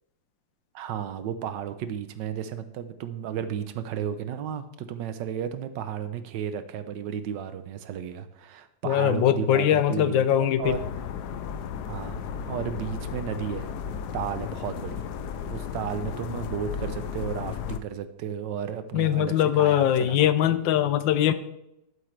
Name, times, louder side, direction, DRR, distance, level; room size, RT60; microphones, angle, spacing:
voice 1, 0.7-10.9 11.9-13.7 14.1-15.0 15.5-20.3, right 9 dB, 75° right, 11 dB, 1.3 m, -33 dB
voice 2, 8.8-10.8 18.9-21.3, left 11 dB, 90° left, 13 dB, 1.4 m, -22 dB
sound 1, 10.6-17.8, left 7 dB, 70° left, 1.2 m, -34 dB
12.0 x 7.9 x 3.2 m, 0.85 s
omnidirectional pair, 2.0 m